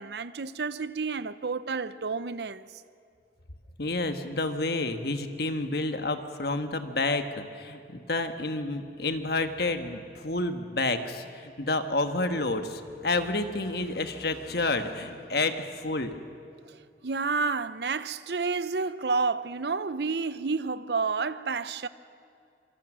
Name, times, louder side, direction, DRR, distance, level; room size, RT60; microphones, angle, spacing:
voice 1, 0.0-2.7 16.7-16.8 17.0-21.9, right 4 dB, 65° right, 0.7 m, -30 dB
voice 2, 3.8-16.1, left 2 dB, 60° left, 1.4 m, -29 dB
26.0 x 25.5 x 6.3 m
head